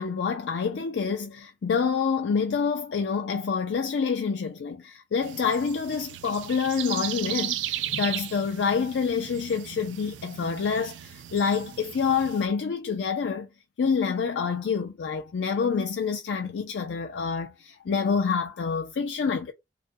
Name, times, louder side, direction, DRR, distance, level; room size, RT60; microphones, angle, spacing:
voice 1, 0.0-13.5 13.8-19.5, left 5 dB, 70° left, 0.4 m, -27 dB
sound 1, 5.2-12.5, right 12 dB, 80° right, 0.3 m, -36 dB
2.4 x 2.1 x 2.5 m
head